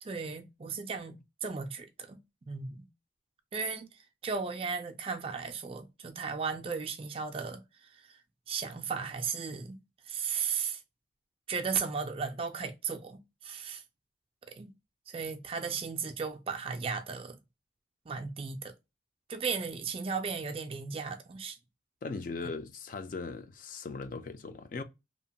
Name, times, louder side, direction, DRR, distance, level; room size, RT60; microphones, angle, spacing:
voice 1, 0.0-2.9 3.5-8.2 8.5-9.8 10.1-10.8 11.5-13.8 14.5-14.7 15.1-17.4 18.1-18.7 19.3-21.6, right 5 dB, 30° right, 0.3 m, -36 dB
voice 2, 22.0-24.8, left 4 dB, 45° left, 0.3 m, -39 dB
2.8 x 2.1 x 2.6 m
head